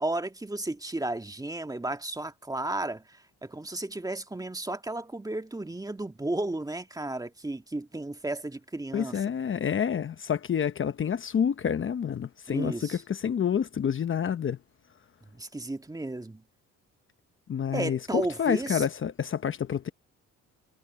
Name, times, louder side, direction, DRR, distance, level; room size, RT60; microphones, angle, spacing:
voice 1, 0.0-9.2 12.5-13.0 15.3-16.4 17.7-18.8, right 2 dB, 10° right, 1.6 m, -33 dB
voice 2, 8.9-14.6 17.5-19.9, left 8 dB, 45° left, 0.9 m, -28 dB
cardioid pair, 90°, 30 cm